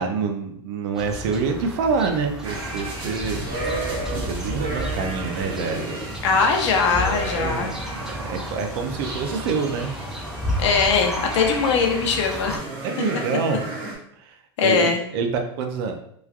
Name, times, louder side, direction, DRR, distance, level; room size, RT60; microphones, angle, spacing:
voice 1, 0.0-3.7 4.1-6.2 7.1-9.9 12.8-13.6 14.2-15.9, right 5 dB, 55° right, 5 dB, 0.5 m, -27 dB
sound 1, 0.9-12.6, equal, 5° right, 0.4 m, -32 dB
sound 2, 2.4-13.9, right 2 dB, 35° right, 0.9 m, -33 dB
voice 2, 6.2-7.7 10.6-12.7 14.6-15.0, left 5 dB, 75° left, 3 dB, 0.6 m, -21 dB
3.0 x 2.3 x 2.4 m, 0.71 s
supercardioid pair, 135°, 15 cm